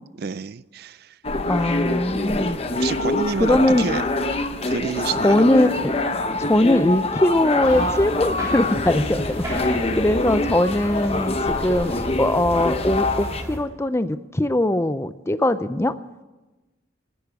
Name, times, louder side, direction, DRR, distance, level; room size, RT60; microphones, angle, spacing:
voice 1, 0.2-1.2 2.7-4.0 4.7-5.4, right 5 dB, 55° right, 17 dB, 0.4 m, -29 dB
sound 1, 1.2-13.4, left 2 dB, 30° left, 0.8 m, -25 dB
voice 2, 1.5-2.6 3.4-3.8 5.2-5.7 6.4-9.2 9.5-11.4 11.6-15.9, left 1 dB, 15° left, 13 dB, 0.5 m, -20 dB
sound 2, 7.6-13.6, equal, 15° right, 3.3 m, -33 dB
15.5 x 10.5 x 8.1 m, 1.1 s
head